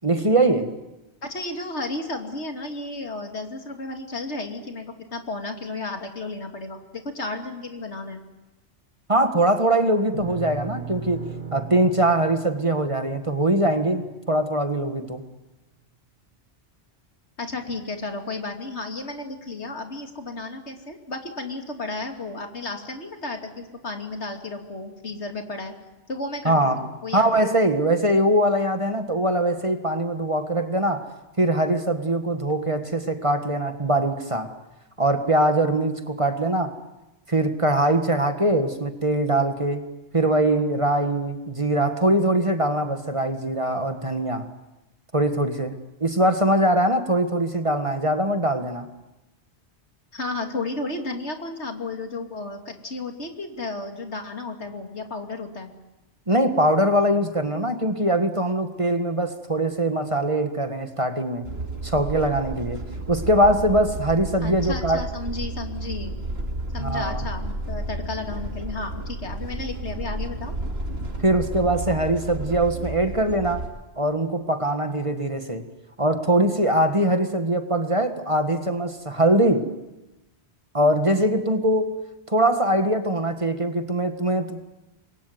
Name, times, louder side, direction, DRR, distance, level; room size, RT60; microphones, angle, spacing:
voice 1, 0.0-0.8 9.1-11.2 11.5-15.2 26.4-26.8 27.1-31.1 31.4-34.5 35.0-36.7 37.3-39.8 40.1-44.5 45.1-45.7 46.0-48.9 56.3-61.5 61.8-62.8 63.1-65.0 66.8-67.2 71.2-73.6 74.0-75.6 76.0-79.7 80.7-82.0 82.3-84.7, right 1 dB, 25° right, 7 dB, 1.8 m, -22 dB
voice 2, 1.2-8.2 17.4-25.7 26.1-27.4 50.1-55.7 64.4-66.1 66.7-70.6, left 2 dB, 70° left, 4 dB, 3.1 m, -33 dB
sound 1, 10.1-14.6, right 6 dB, 45° right, 2.0 m, -38 dB
sound 2, 61.4-73.7, right 1 dB, 60° right, 2.8 m, -32 dB
27.0 x 22.0 x 9.5 m, 1.0 s
omnidirectional pair, 1.2 m